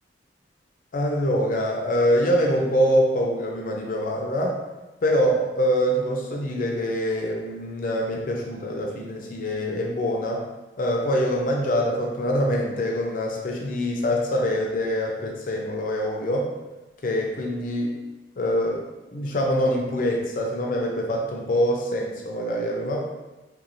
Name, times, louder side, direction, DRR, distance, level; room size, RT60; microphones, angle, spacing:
voice 1, 0.9-4.6 5.0-10.4 10.8-16.5 17.0-18.0 18.4-18.9 19.1-23.0, equal, 50° left, 0 dB, 0.4 m, -24 dB
2.5 x 2.3 x 2.9 m, 1.1 s
head